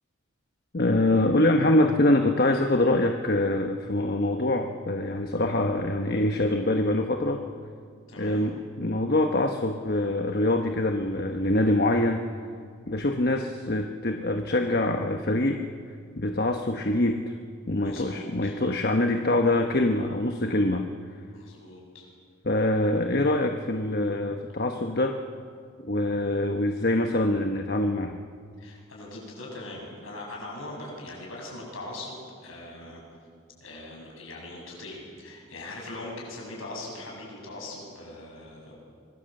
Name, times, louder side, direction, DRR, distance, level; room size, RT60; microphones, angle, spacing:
voice 1, 0.7-7.4 8.2-12.2 12.9-15.6 16.2-17.3 17.7-20.9 22.4-25.2 25.8-28.1, left 1 dB, 45° left, 4 dB, 1.1 m, -24 dB
voice 2, 8.1-8.4 17.8-18.6 21.3-22.0 28.6-33.0 33.6-38.7, left 2 dB, 65° left, -1 dB, 7.7 m, -41 dB
25.5 x 21.0 x 7.8 m, 2.1 s
head